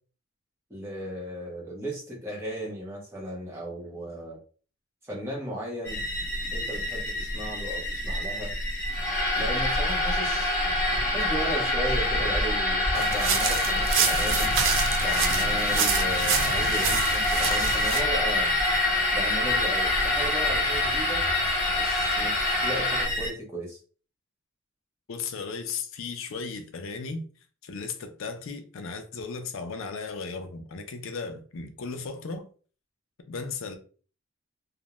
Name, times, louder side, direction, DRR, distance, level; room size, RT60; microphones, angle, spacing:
voice 1, 0.7-4.4 5.0-6.0 6.5-8.5 9.3-10.6 11.1-14.5 15.0-18.5 19.1-21.2 21.8-23.8, right 1 dB, 10° right, 0.7 m, -36 dB
sound 1, 5.8-23.3, left 1 dB, 10° left, 0.9 m, -29 dB
sound 2, 8.9-23.0, left 2 dB, 35° left, 0.8 m, -27 dB
sound 3, 13.0-18.0, right 7 dB, 60° right, 0.3 m, -28 dB
voice 2, 25.1-27.2 27.6-32.5 33.3-33.8, left 4 dB, 65° left, 0.4 m, -36 dB
2.4 x 2.0 x 2.9 m
head